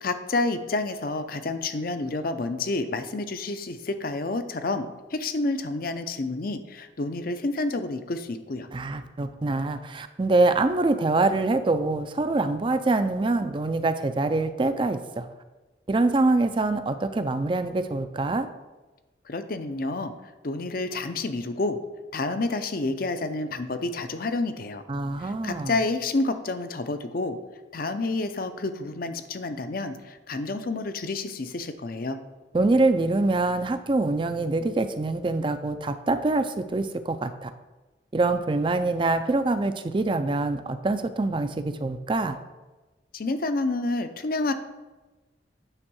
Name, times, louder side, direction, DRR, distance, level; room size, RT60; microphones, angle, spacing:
voice 1, 0.0-8.7 19.3-20.1 20.4-21.8 22.1-24.8 25.2-27.4 27.7-32.2 43.1-44.5, left 2 dB, 50° left, 9 dB, 0.6 m, -29 dB
voice 2, 8.7-15.3 15.9-18.5 24.9-25.7 32.5-37.5 38.1-42.4, right 2 dB, 25° right, 10 dB, 0.4 m, -25 dB
8.9 x 3.6 x 6.1 m, 1.2 s
head